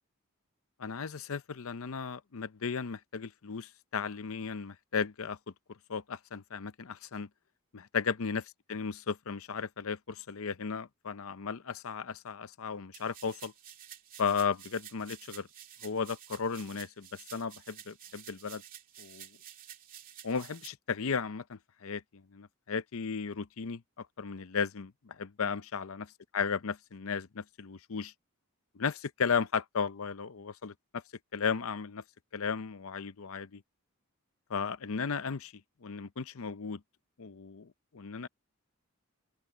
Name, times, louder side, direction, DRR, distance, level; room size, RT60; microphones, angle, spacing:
voice 1, 0.8-5.4 5.9-7.3 7.7-8.4 8.7-13.5 14.2-15.5 15.8-18.6 19.0-19.3 20.2-26.0 26.3-28.1 28.7-31.0 31.3-32.0 32.3-33.6 34.5-35.5 35.8-36.8 37.2-38.3, left 6 dB, 70° left, 0.6 m, -35 dB
sound 1, 12.9-20.7, right 10 dB, 40° right, 2.7 m, -51 dB
open air
head